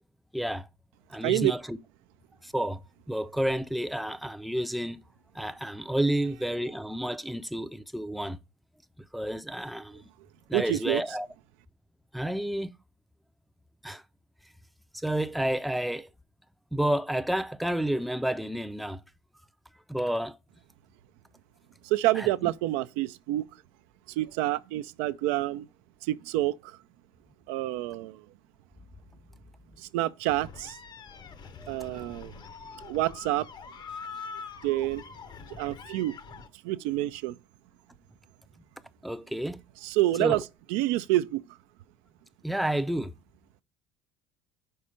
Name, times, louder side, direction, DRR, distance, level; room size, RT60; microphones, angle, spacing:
voice 1, 0.3-0.7 1.1-1.8 2.4-2.8 3.1-5.0 5.4-8.4 9.1-10.0 10.5-11.3 12.1-12.7 13.8-14.0 15.0-16.1 16.7-19.0 19.9-20.4 22.2-22.3 31.6-31.7 39.0-39.6 40.2-40.4 42.4-43.1, right 1 dB, ahead, 0.5 m, -30 dB
voice 2, 10.5-11.0 21.8-23.4 24.2-25.7 26.0-26.8 27.5-28.2 29.8-30.8 31.7-32.3 32.8-33.5 34.6-35.0 35.5-36.2 36.6-37.3 39.8-40.4 40.7-41.4, right 16 dB, 75° right, 0.4 m, -28 dB
sound 1, 30.3-36.5, left 5 dB, 40° left, 0.8 m, -44 dB
5.5 x 4.3 x 4.9 m
hypercardioid pair, 80°, 11 cm